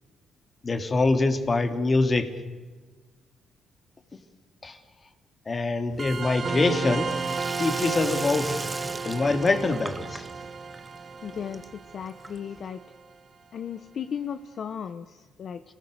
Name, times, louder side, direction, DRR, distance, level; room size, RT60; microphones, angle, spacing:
voice 1, 0.6-2.4 4.6-4.8 5.5-7.1 7.6-8.5 9.0-10.3, left 3 dB, 30° left, 7 dB, 2.7 m, -24 dB
Sink (filling or washing), 5.9-12.7, right 2 dB, 15° right, 1.2 m, -39 dB
sound 1, 6.0-13.1, right 5 dB, 45° right, 1.3 m, -33 dB
voice 2, 11.2-12.8 13.5-15.6, left 8 dB, 55° left, 9 dB, 1.0 m, -35 dB
29.0 x 19.5 x 6.8 m, 1.3 s
cardioid pair, 90°, 0 cm